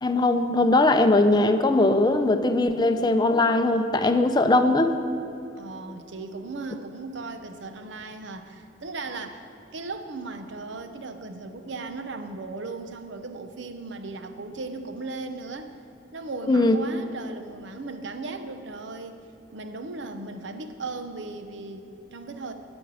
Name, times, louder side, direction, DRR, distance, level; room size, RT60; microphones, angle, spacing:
voice 1, 0.0-4.9 16.5-16.8, left 2 dB, 20° left, 8 dB, 0.5 m, -20 dB
voice 2, 5.6-15.7 16.1-19.2 19.5-22.5, right 3 dB, 70° right, 8 dB, 0.7 m, -37 dB
12.5 x 5.3 x 8.7 m, 2.8 s
head